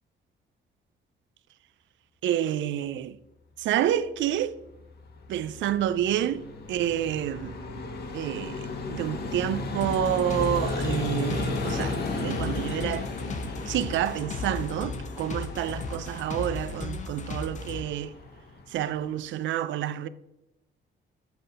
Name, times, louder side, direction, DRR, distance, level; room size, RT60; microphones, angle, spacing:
voice 1, 2.2-3.2 3.6-4.6 5.3-7.6 8.1-13.1 13.7-18.1 18.7-20.1, right 11 dB, 75° right, 0.4 m, -29 dB
Vehicle, 4.7-19.4, left 3 dB, 55° left, 1.1 m, -35 dB
sound 1, 9.8-17.8, left 3 dB, 40° left, 0.8 m, -35 dB
7.7 x 4.0 x 3.9 m
cardioid pair, 90°, 20 cm